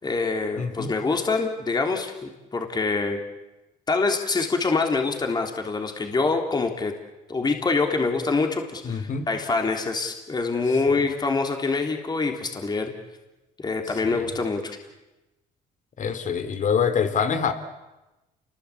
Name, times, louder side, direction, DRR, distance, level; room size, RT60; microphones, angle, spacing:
voice 1, 0.0-3.2 3.9-6.9 7.3-12.9 13.6-14.8, left 4 dB, 25° left, 4 dB, 3.4 m, -25 dB
voice 2, 0.6-0.9 8.8-9.3 14.0-14.2 16.0-17.5, left 6 dB, 50° left, 10 dB, 3.2 m, -25 dB
29.0 x 21.5 x 8.6 m, 1.0 s
cardioid pair, 110°, 17 cm